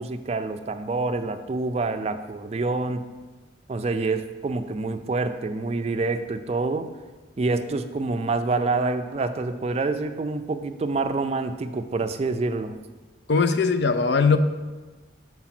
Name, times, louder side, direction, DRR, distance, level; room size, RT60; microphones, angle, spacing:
voice 1, 0.0-3.1 3.7-6.9 7.4-12.8, right 3 dB, 35° right, 9 dB, 0.3 m, -27 dB
voice 2, 13.3-14.4, left 4 dB, 60° left, 10 dB, 0.4 m, -20 dB
5.9 x 4.7 x 5.9 m, 1.3 s
head